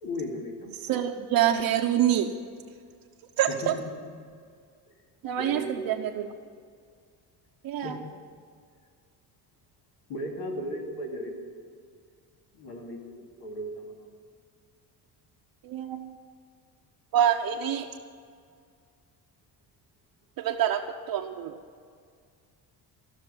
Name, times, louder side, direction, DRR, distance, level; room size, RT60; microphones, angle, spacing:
voice 1, 0.0-1.0 3.5-4.4 5.3-5.8 7.8-8.0 10.1-11.5 12.5-13.1 13.4-14.2, left 1 dB, 70° left, 0 dB, 2.9 m, -36 dB
voice 2, 0.8-2.3 3.4-3.7 5.2-6.3 7.6-7.9 15.6-16.1 17.1-17.9 20.4-21.5, right 10 dB, 65° right, 0 dB, 0.9 m, -26 dB
15.5 x 6.6 x 9.7 m, 2.1 s
cardioid pair, 115°, 40 cm